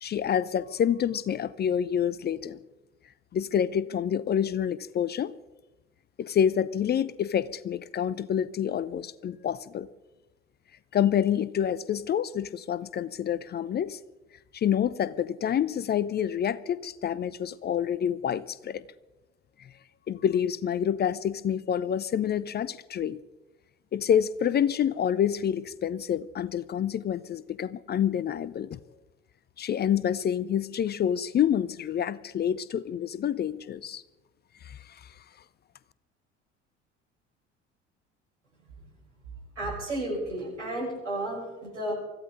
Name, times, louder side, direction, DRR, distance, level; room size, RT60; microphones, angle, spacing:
voice 1, 0.0-2.6 3.3-5.3 6.2-9.9 10.9-14.0 14.5-18.8 19.6-19.7 20.1-23.2 23.9-28.8 29.6-34.0 34.6-35.1, left 9 dB, 30° left, 19 dB, 0.6 m, -27 dB
voice 2, 39.6-41.9, right 1 dB, 85° right, -4 dB, 6.2 m, -32 dB
24.5 x 15.0 x 3.8 m, 1.1 s
figure-of-eight pair, 60°, 35 cm